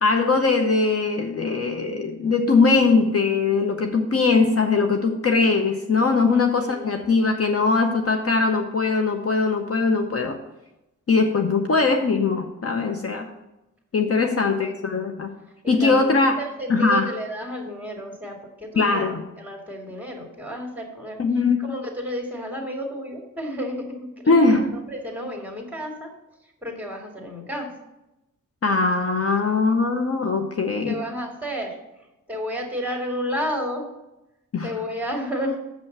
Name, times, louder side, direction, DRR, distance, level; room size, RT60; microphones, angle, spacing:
voice 1, 0.0-10.4 11.1-13.3 13.9-15.3 15.7-16.4 16.7-17.1 18.8-19.2 21.2-21.6 24.3-24.8 28.6-31.0 34.5-34.8, left 4 dB, 45° left, 4 dB, 0.8 m, -21 dB
voice 2, 15.6-19.1 19.4-21.2 21.6-24.6 24.9-26.1 26.6-27.7 30.8-31.8 32.3-33.9 34.6-35.6, equal, 5° right, 1 dB, 2.2 m, -31 dB
7.0 x 5.5 x 7.2 m, 0.94 s
wide cardioid pair, 100°, 32 cm